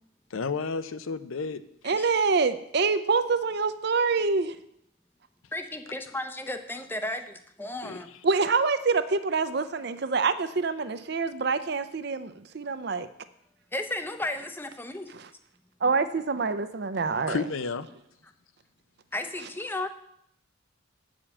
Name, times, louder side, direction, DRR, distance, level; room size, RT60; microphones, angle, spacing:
voice 1, 0.3-1.6 7.8-8.0 17.3-17.9, left 4 dB, 80° left, 13 dB, 0.6 m, -31 dB
voice 2, 1.8-4.5 8.2-13.1 15.8-17.4, right 4 dB, 50° right, 12 dB, 0.5 m, -26 dB
voice 3, 5.5-8.1 8.4-8.5 13.7-15.1 19.1-19.9, left 2 dB, 10° left, 7 dB, 0.6 m, -34 dB
8.7 x 5.1 x 7.1 m, 0.73 s
head